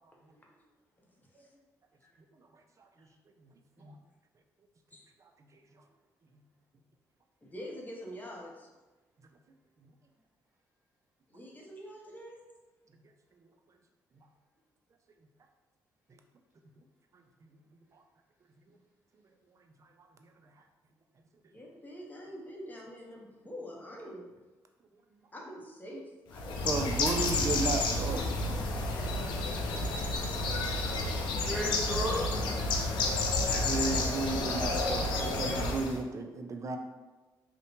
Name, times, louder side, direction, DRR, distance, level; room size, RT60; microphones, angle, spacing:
voice 1, 0.3-0.7 1.4-1.5 2.0-2.1 3.0-3.1 4.9-5.0 7.4-8.7 11.3-12.4 21.5-24.2 25.3-26.9, equal, 20° left, -2 dB, 0.7 m, -46 dB
voice 2, 3.4-3.9 5.2-5.8 9.8-9.9 14.2-14.3 16.1-16.2 17.1-18.0 18.7-18.8 19.8-20.5 26.6-28.4 33.4-36.8, right 3 dB, 40° right, 5 dB, 0.4 m, -36 dB
Bird, 26.3-36.0, left 2 dB, 75° left, 0.4 m, -30 dB
voice 3, 28.9-30.1 31.4-32.2 33.4-33.8, equal, 20° right, -11 dB, 1.0 m, -38 dB
2.7 x 2.1 x 2.7 m, 1.2 s
supercardioid pair, 55°, 8 cm